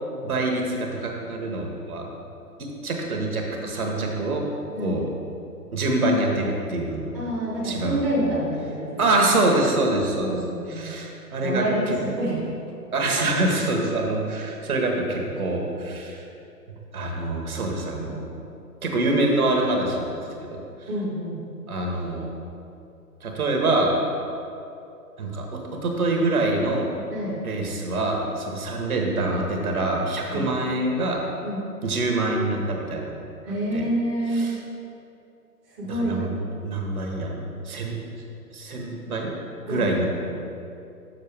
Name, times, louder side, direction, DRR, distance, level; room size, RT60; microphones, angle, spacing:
voice 1, 0.2-2.1 2.6-4.4 4.8-5.1 5.7-7.1 7.6-8.3 9.0-10.3 10.7-12.0 12.9-16.2 16.9-18.2 18.8-20.6 21.7-22.3 23.2-23.9 25.2-26.9 27.4-31.2 31.8-33.1 33.7-33.9 34.3-34.6 35.9-36.3 36.6-37.4 37.6-37.9 38.5-39.3 39.7-40.1, right 2 dB, 60° right, 1 dB, 1.4 m, -25 dB
voice 2, 7.1-9.1 10.1-10.9 11.4-11.8 12.2-12.4 13.0-13.1 20.9-21.4 27.1-27.4 30.3-30.5 31.4-31.6 33.4-34.5 35.8-36.3 39.7-40.1, right 1 dB, 10° right, -9 dB, 0.7 m, -27 dB
6.6 x 6.5 x 3.5 m, 2.6 s
figure-of-eight pair, 125°, 48 cm